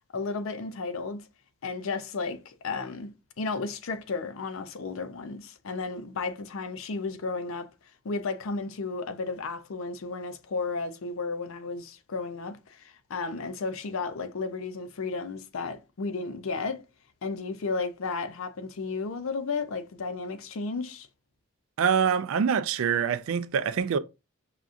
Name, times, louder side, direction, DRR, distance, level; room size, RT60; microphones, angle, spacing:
voice 1, 0.1-1.3 1.6-3.1 3.4-7.7 8.0-16.8 17.2-21.1, left 4 dB, 65° left, 0.5 m, -33 dB
voice 2, 21.8-24.0, right 7 dB, 65° right, 0.4 m, -25 dB
5.8 x 2.4 x 2.5 m
head